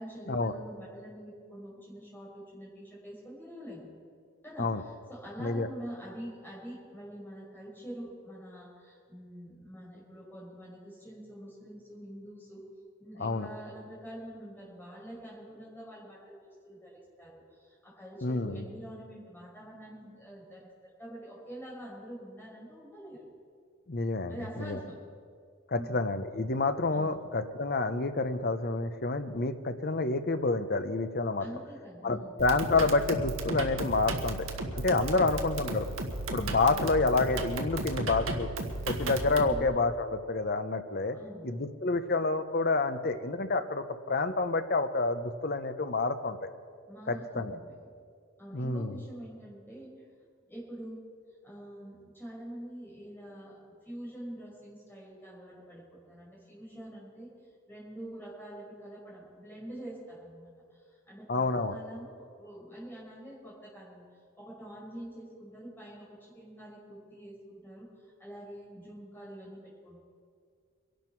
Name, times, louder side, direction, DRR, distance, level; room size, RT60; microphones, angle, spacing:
voice 1, 0.0-3.9 4.4-12.6 13.0-16.4 16.6-23.3 24.3-25.0 25.7-26.0 26.9-27.1 31.4-32.3 35.1-35.4 39.2-39.7 41.1-41.5 46.9-47.9 48.4-49.9 50.5-51.0 51.4-57.3 57.7-64.0 64.4-70.0, right 1 dB, 10° left, -5 dB, 5.3 m, -46 dB
voice 2, 18.2-18.6 23.9-24.8 25.7-31.4 32.0-34.5 34.7-35.9 36.3-38.5 38.9-41.2 41.4-46.5 47.1-47.6 48.5-49.0 61.3-61.7, left 3 dB, 45° left, 10 dB, 0.8 m, -28 dB
sound 1, 32.4-39.6, right 2 dB, 80° right, 1.5 m, -35 dB
23.5 x 11.5 x 4.6 m, 2.1 s
head